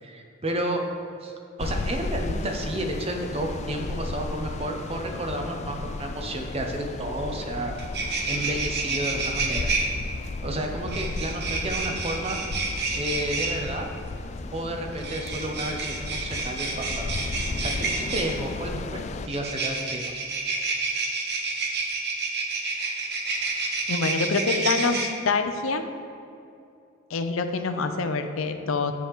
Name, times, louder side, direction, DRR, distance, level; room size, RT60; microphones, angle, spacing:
voice 1, 0.0-0.8 1.2-7.8 8.3-9.7 10.4-12.4 12.9-13.9 14.5-17.2 17.6-20.1, right 1 dB, 30° right, 3 dB, 0.8 m, -31 dB
sound 1, 1.6-19.3, left 3 dB, 35° left, 0.3 m, -34 dB
sound 2, 7.4-7.5 7.7-9.8 10.9-13.5 14.9-18.3 19.3-25.0, right 4 dB, 55° right, 1.1 m, -29 dB
voice 2, 23.9-25.8 27.1-28.9, left 4 dB, 90° left, 7 dB, 0.6 m, -26 dB
9.9 x 7.3 x 3.6 m, 2.6 s
head